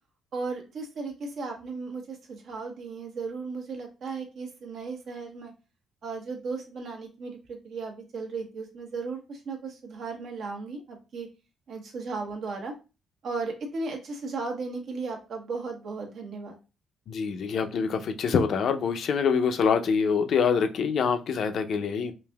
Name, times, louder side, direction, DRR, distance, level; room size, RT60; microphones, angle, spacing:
voice 1, 0.3-5.5 6.0-11.3 11.7-12.7 13.2-16.6, right 4 dB, 65° right, 2 dB, 1.0 m, -35 dB
voice 2, 17.1-22.1, left 6 dB, 65° left, 8 dB, 0.5 m, -25 dB
5.1 x 2.7 x 2.2 m, 0.30 s
cardioid pair, 90°, 0 cm